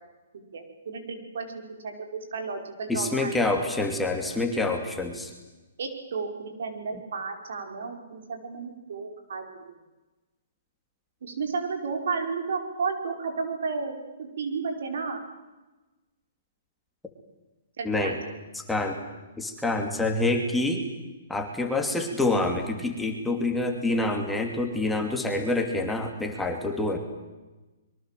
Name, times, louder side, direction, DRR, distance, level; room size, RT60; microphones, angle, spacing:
voice 1, 0.5-1.9 2.3-3.3 5.8-9.7 11.2-14.0 14.4-15.2 17.8-18.1, right 4 dB, 70° right, 5 dB, 5.4 m, -32 dB
voice 2, 2.9-5.3 17.8-18.2 18.5-19.0 19.4-20.9 21.3-27.0, left 2 dB, 5° left, 3 dB, 2.7 m, -27 dB
24.5 x 23.0 x 7.7 m, 1.1 s
hypercardioid pair, 150°, 0 cm